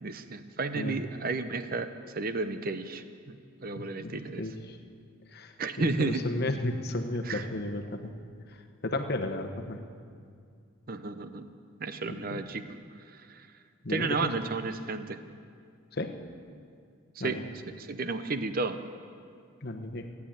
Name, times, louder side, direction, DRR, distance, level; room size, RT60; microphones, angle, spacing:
voice 1, 0.0-4.4 5.6-6.2 7.2-7.5 10.9-11.5 11.8-12.7 13.1-13.5 13.9-15.2 17.2-17.4 17.8-18.8, right 3 dB, 40° right, 10 dB, 0.7 m, -32 dB
voice 2, 3.8-4.8 5.3-5.5 5.8-8.1 8.8-9.8 12.1-12.4 13.8-14.3 15.9-16.2 17.2-17.4 19.6-20.1, left 2 dB, 45° left, 5 dB, 1.1 m, -34 dB
16.5 x 9.5 x 8.8 m, 2.3 s
head